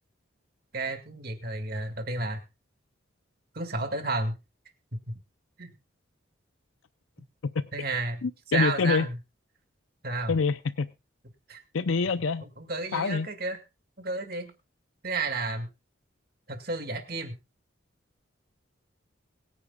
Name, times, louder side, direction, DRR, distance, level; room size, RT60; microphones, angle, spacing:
voice 1, 0.7-2.4 3.5-4.4 5.1-5.2 5.6-5.7 7.7-9.2 10.0-10.4 11.5-11.6 12.4-13.6 14.0-14.5 15.0-15.7 16.5-17.4, right 3 dB, 50° right, 7 dB, 2.0 m, -32 dB
voice 2, 8.2-9.1 10.3-10.9 11.7-12.4 12.9-13.3, left 4 dB, 85° left, 13 dB, 0.6 m, -26 dB
22.5 x 9.7 x 2.3 m, 0.24 s
head